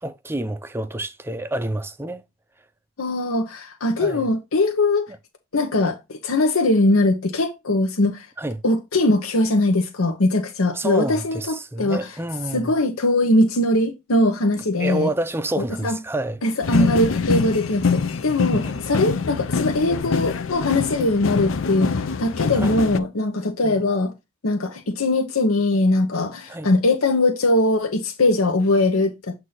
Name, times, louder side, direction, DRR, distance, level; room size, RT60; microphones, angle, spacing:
voice 1, 0.0-2.2 4.0-4.3 8.4-8.6 10.7-12.7 14.6-16.4 16.8-17.1 18.6-18.8 21.0-21.1 22.5-22.7 23.6-23.8 26.5-26.7, right 1 dB, 10° right, 0.4 m, -29 dB
voice 2, 3.0-5.1 5.5-8.3 8.6-12.1 12.5-15.1 15.8-16.0 16.4-24.1 24.4-29.3, left 2 dB, 90° left, 0.9 m, -21 dB
sound 1, 16.6-23.0, left 5 dB, 65° left, 0.5 m, -24 dB
7.9 x 2.7 x 5.6 m
head